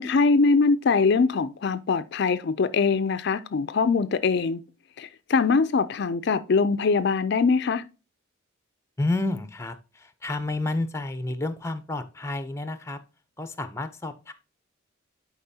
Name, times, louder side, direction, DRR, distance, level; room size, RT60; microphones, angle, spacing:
voice 1, 0.0-4.6 5.0-7.8, left 4 dB, 55° left, 0.4 m, -22 dB
voice 2, 9.0-13.0 13.4-14.3, left 2 dB, 15° left, 0.6 m, -30 dB
10.5 x 4.7 x 2.8 m
head